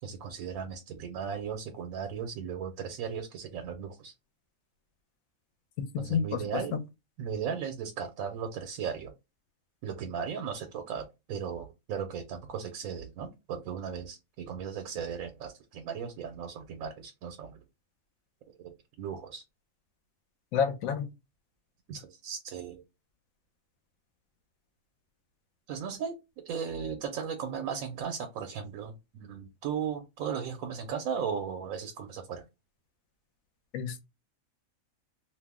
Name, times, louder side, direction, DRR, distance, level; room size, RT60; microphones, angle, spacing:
voice 1, 0.0-4.1 6.0-6.8 7.2-9.1 9.8-17.6 18.5-19.4 21.9-22.8 25.7-26.2 26.4-32.4, right 7 dB, 90° right, 1.0 m, -36 dB
voice 2, 5.8-6.4 6.7-6.8 20.5-21.1 33.7-34.1, left 7 dB, 90° left, 1.0 m, -29 dB
2.6 x 2.0 x 3.4 m
omnidirectional pair, 1.4 m